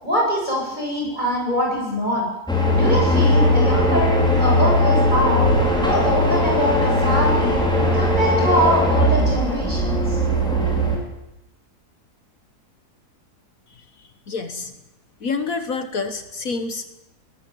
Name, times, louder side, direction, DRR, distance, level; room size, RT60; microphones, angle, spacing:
voice 1, 0.0-2.3 2.7-5.5 5.8-7.6 7.9-10.2, equal, 25° right, -2 dB, 8.2 m, -23 dB
sound 1, 2.5-11.0, left 1 dB, 5° left, 4.8 m, -19 dB
voice 2, 14.3-14.7 15.2-17.0, left 4 dB, 60° left, 9 dB, 1.7 m, -27 dB
19.5 x 14.5 x 9.3 m, 0.92 s
omnidirectional pair, 1.7 m